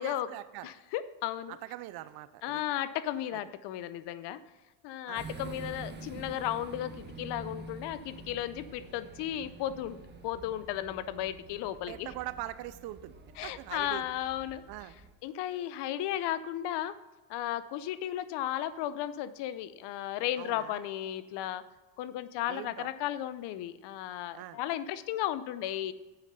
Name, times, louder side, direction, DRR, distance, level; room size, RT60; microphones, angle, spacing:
voice 1, 0.0-0.7 1.5-2.6 3.3-3.4 5.1-5.2 11.9-13.2 13.4-14.1 14.7-15.0 20.4-20.8 22.5-22.9 24.3-24.6, right 15 dB, 55° right, 14 dB, 0.6 m, -42 dB
voice 2, 0.6-1.6 2.4-4.4 4.8-10.0 10.2-12.1 13.4-14.6 15.2-16.9 17.3-21.6 22.0-25.9, left 12 dB, 60° left, 15 dB, 0.7 m, -34 dB
sound 1, 5.1-15.1, right 3 dB, 20° right, 1.3 m, -47 dB
7.7 x 5.9 x 5.6 m, 1.1 s
supercardioid pair, 100°, 46 cm